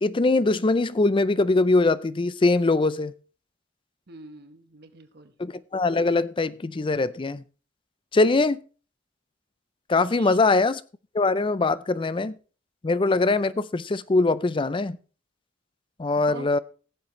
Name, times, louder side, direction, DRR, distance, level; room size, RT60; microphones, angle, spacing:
voice 1, 0.0-3.1 5.4-7.4 8.1-8.6 9.9-10.8 11.1-12.4 12.8-15.0 16.0-16.6, left 3 dB, 25° left, 0.4 m, -22 dB
voice 2, 4.1-5.3 10.2-10.4 16.1-16.6, right 2 dB, 55° right, 1.1 m, -44 dB
19.5 x 7.3 x 3.1 m
head